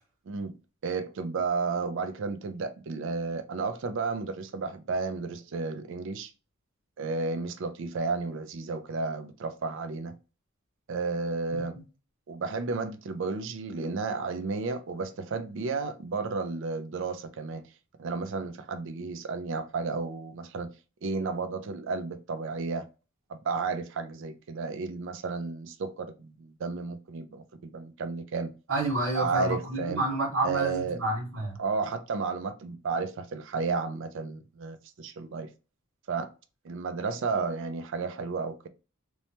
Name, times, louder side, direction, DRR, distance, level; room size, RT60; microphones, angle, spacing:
voice 1, 0.8-6.3 7.0-10.1 10.9-11.8 12.3-17.6 18.0-20.7 21.0-22.9 23.3-28.5 29.1-30.0 30.4-31.0 31.6-35.5 36.1-36.3 36.6-38.7, right 4 dB, 60° right, 0.4 m, -32 dB
voice 2, 28.7-31.6, right 2 dB, 85° right, 1.5 m, -29 dB
3.0 x 2.1 x 2.7 m
head